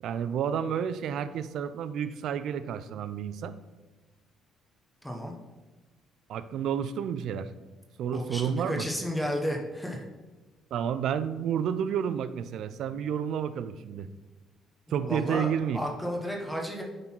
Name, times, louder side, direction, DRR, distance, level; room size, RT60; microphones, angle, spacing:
voice 1, 0.0-3.5 6.3-7.5 8.0-8.9 10.7-14.1 14.9-15.8, right 8 dB, 70° right, 12 dB, 0.5 m, -30 dB
voice 2, 5.0-5.3 8.1-10.1 15.0-16.8, equal, 5° left, 0 dB, 1.1 m, -32 dB
9.6 x 4.0 x 4.5 m, 1.2 s
cardioid pair, 100°, 0 cm